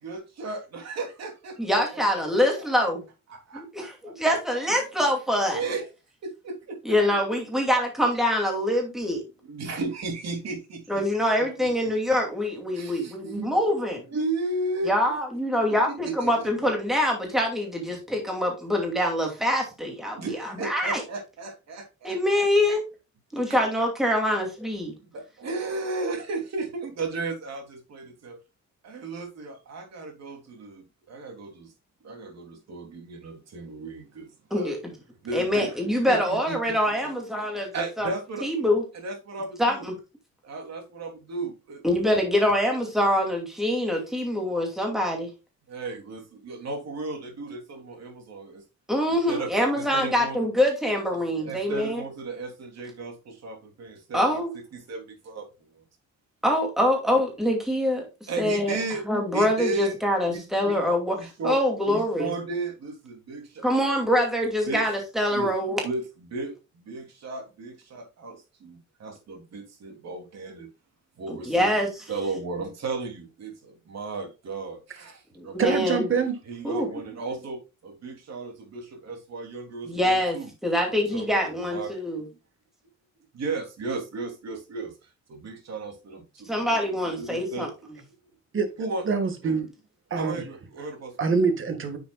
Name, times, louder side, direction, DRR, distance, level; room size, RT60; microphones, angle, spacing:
voice 1, 0.0-2.4 3.3-4.1 4.7-4.8 5.5-5.9 6.2-7.0 9.4-11.0 11.4-11.9 12.7-13.5 14.1-14.9 15.9-16.5 20.2-22.2 25.0-28.4 28.8-31.7 32.0-34.8 35.2-36.8 37.0-37.1 37.7-38.5 38.9-39.9 40.4-41.8 45.7-48.6 49.1-50.4 51.5-54.2 54.7-55.5 55.7-55.8 58.3-59.0 59.3-60.0 60.3-60.8 61.1-61.6 61.9-63.6 64.6-64.9 65.3-65.5 65.8-70.7 71.2-71.8 72.1-75.9 76.5-80.5 80.8-82.0 83.3-84.9 85.3-87.7 88.8-89.0 89.4-89.6 90.2-91.4, right 3 dB, 60° right, 3.0 m, -35 dB
voice 2, 1.6-3.0 3.5-5.6 6.8-9.2 10.9-14.0 14.8-21.0 22.0-22.8 23.3-24.9 34.5-34.8 35.3-37.7 38.0-38.1 38.4-38.8 39.6-39.9 41.8-45.3 48.9-52.0 54.1-54.5 56.4-58.0 58.4-58.8 59.1-61.2 61.4-62.3 63.6-65.8 71.3-72.0 75.4-76.1 76.6-76.9 79.8-80.4 80.6-82.2 86.5-87.7, left 1 dB, ahead, 2.5 m, -24 dB
voice 3, 75.6-76.3 88.5-88.7 89.0-89.7 90.1-90.3 91.2-92.0, right 5 dB, 45° right, 1.8 m, -24 dB
9.7 x 7.0 x 2.4 m
wide cardioid pair, 145°, 30 cm